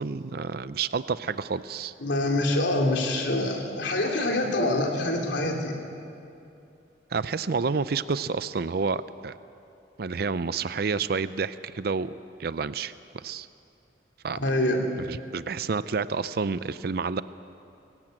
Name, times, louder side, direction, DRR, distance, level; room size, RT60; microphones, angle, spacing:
voice 1, 0.0-1.9 7.1-9.4 10.0-13.5 14.2-14.4 15.1-17.2, right 5 dB, 55° right, 15 dB, 0.5 m, -29 dB
voice 2, 2.0-5.8 14.4-14.9, left 1 dB, 85° left, 1 dB, 3.0 m, -25 dB
22.5 x 17.0 x 8.9 m, 2.7 s
head